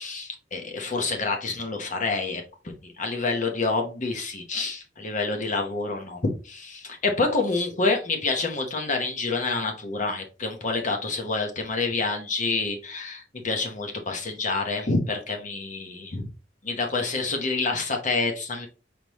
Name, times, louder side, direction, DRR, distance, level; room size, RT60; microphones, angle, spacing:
voice 1, 0.0-16.3 16.6-18.7, left 3 dB, 45° left, 3 dB, 1.0 m, -28 dB
4.8 x 3.7 x 3.0 m, 0.33 s
head